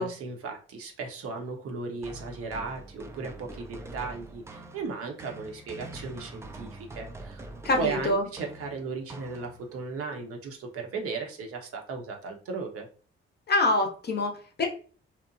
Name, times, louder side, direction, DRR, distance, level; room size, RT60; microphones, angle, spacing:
voice 1, 0.0-7.5 7.8-12.9, right 4 dB, 45° right, 2 dB, 0.6 m, -36 dB
sound 1, 2.0-9.8, right 2 dB, 10° right, 0.3 m, -44 dB
voice 2, 7.6-8.2 13.5-14.7, left 2 dB, 30° left, 3 dB, 0.6 m, -25 dB
2.8 x 2.1 x 2.5 m, 0.41 s
figure-of-eight pair, 40°, 32 cm